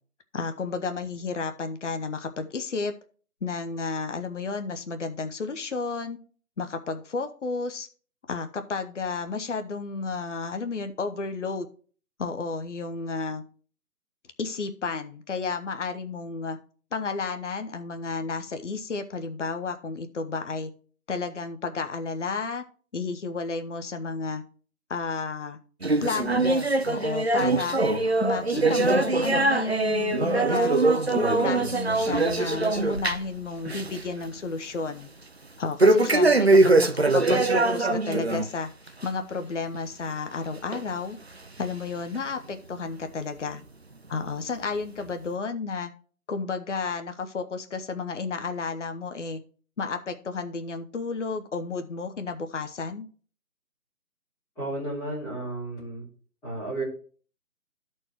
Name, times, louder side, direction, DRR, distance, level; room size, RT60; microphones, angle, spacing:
voice 1, 0.3-2.9 3.4-6.2 6.6-7.9 8.3-11.7 12.2-13.4 14.4-16.6 16.9-20.7 21.1-22.6 22.9-24.4 24.9-25.6 26.0-27.8 28.2-30.7 31.1-35.1 35.6-41.2 41.6-43.6 44.1-45.9 46.3-49.4 49.8-53.0, left 4 dB, 50° left, 8 dB, 1.0 m, -32 dB
sound 1, 25.8-33.4 33.7-34.0 34.4-34.5 35.8-38.5 38.9-39.1 39.7-39.8 40.7-40.8 41.6-41.7, right 2 dB, 45° right, 0.4 m, -22 dB
voice 2, 54.6-56.1 56.4-56.8, right 2 dB, 5° left, -11 dB, 3.7 m, -33 dB
11.5 x 4.6 x 4.6 m, 0.42 s
figure-of-eight pair, 160°, 46 cm